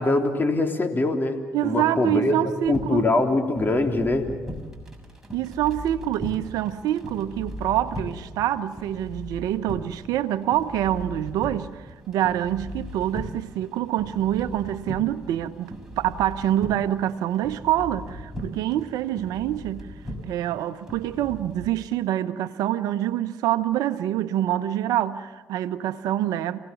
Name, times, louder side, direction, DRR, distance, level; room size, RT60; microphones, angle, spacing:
voice 1, 0.0-2.4 2.7-4.3, left 2 dB, 30° left, 3.6 m, -23 dB
voice 2, 1.5-3.1 5.3-19.9 20.3-26.6, right 12 dB, 75° right, 0.9 m, -26 dB
sound 1, 2.6-21.7, equal, 10° right, 7.0 m, -39 dB
28.5 x 17.5 x 7.1 m
hypercardioid pair, 55°, 6 cm